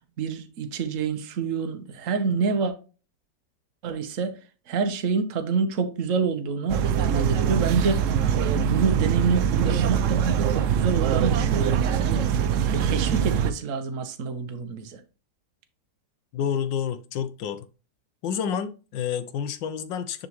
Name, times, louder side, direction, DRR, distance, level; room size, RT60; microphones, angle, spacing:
voice 1, 0.2-2.7 3.8-4.4 4.7-8.0 8.3-12.3 12.6-15.0, right 5 dB, 50° right, 1.2 m, -27 dB
sound 1, 6.7-13.5, right 8 dB, 80° right, 0.7 m, -23 dB
voice 2, 16.3-17.6 18.2-20.3, left 8 dB, 80° left, 1.5 m, -29 dB
10.0 x 4.1 x 3.1 m
omnidirectional pair, 2.0 m